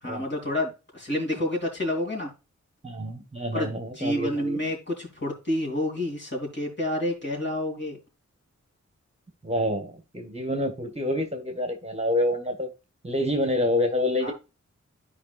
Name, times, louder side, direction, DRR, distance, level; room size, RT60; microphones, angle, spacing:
voice 1, 0.0-2.3 3.5-3.7 4.0-8.0 14.2-14.3, left 1 dB, 40° left, 3.1 m, -29 dB
voice 2, 2.8-4.6 9.4-12.7 13.0-14.3, left 1 dB, 20° right, 1.4 m, -27 dB
12.0 x 5.1 x 2.4 m
wide cardioid pair, 75°, 30 cm